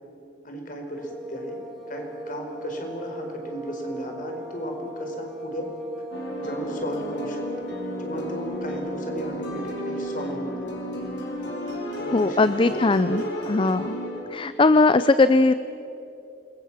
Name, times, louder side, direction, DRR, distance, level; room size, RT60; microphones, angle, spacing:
voice 1, 0.4-1.6 1.9-5.7 6.4-7.7 8.0-10.7 12.0-13.5, equal, 45° left, 3 dB, 4.5 m, -35 dB
sound 1, 0.9-9.6, equal, ahead, 3.6 m, -38 dB
sound 2, 6.1-14.2, equal, 70° left, 5.8 m, -33 dB
voice 2, 12.1-13.2 13.5-14.0 14.3-15.5, left 3 dB, 30° left, 13 dB, 0.4 m, -19 dB
28.0 x 21.5 x 7.4 m, 3.0 s
head